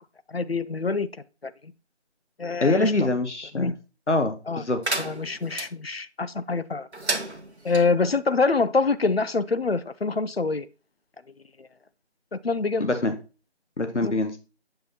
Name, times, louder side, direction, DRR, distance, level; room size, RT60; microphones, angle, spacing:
voice 1, 0.3-1.1 1.4-1.7 2.4-3.1 3.5-3.7 4.5-4.6 5.0-6.9 7.6-10.7 11.6-11.7 12.3-12.9 14.0-14.1, left 4 dB, 60° left, 0.5 m, -25 dB
voice 2, 2.6-3.7 4.1-4.8 12.8-13.1 13.8-14.4, left 2 dB, 85° left, 1.1 m, -24 dB
sound 1, 4.8-5.7 6.9-7.8, right 2 dB, 75° right, 1.0 m, -31 dB
7.7 x 5.5 x 2.8 m
figure-of-eight pair, 175°, 34 cm